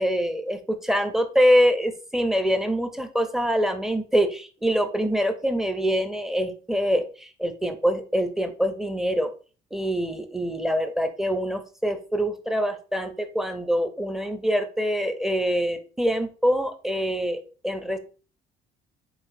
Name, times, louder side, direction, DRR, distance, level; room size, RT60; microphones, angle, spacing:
voice 1, 0.0-9.3 9.7-18.0, equal, ahead, 8 dB, 0.6 m, -25 dB
4.7 x 4.2 x 2.6 m, 0.37 s
cardioid pair, 110°, 17 cm